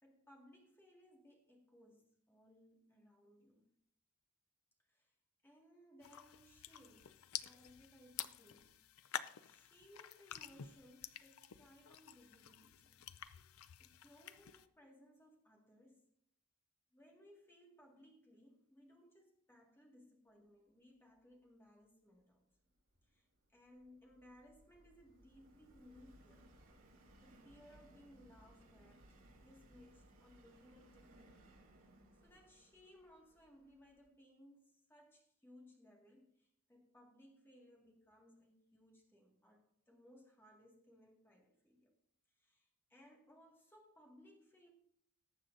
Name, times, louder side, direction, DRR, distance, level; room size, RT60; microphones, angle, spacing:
voice 1, 0.0-3.7 4.9-5.1 5.4-8.8 9.4-13.1 13.8-16.1 16.9-22.4 23.0-26.6 27.2-31.6 32.2-41.9 42.4-44.7, left 1 dB, 10° left, 1.9 m, -64 dB
sound 1, 6.0-14.7, left 10 dB, 75° left, 0.5 m, -50 dB
Subway metro underground, 22.8-34.1, right 1 dB, 70° right, 2.5 m, -65 dB
19.0 x 7.5 x 2.6 m
head